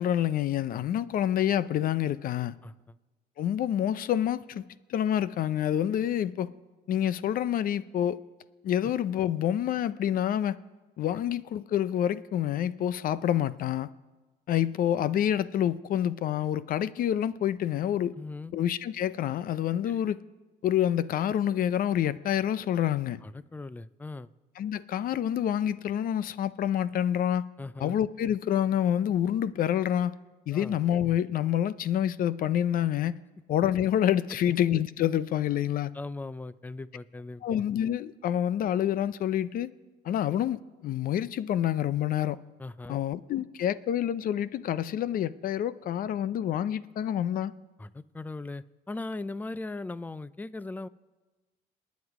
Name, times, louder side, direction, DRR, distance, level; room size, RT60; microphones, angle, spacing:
voice 1, 0.0-2.6 3.4-4.6 4.9-6.5 6.9-8.2 8.6-10.6 11.0-13.9 14.5-18.1 18.5-20.2 20.6-23.2 24.6-27.4 27.8-30.1 30.5-33.2 33.5-35.9 37.4-39.7 40.0-42.4 42.9-47.5, left 10 dB, 55° left, 0.6 m, -27 dB
voice 2, 2.6-2.9 18.1-18.5 19.9-20.0 23.2-24.3 27.6-28.0 30.5-30.8 34.4-34.5 35.9-37.4 42.6-43.0 47.8-50.9, left 2 dB, 10° left, 0.4 m, -39 dB
28.0 x 9.5 x 4.9 m
cardioid pair, 110°, 17 cm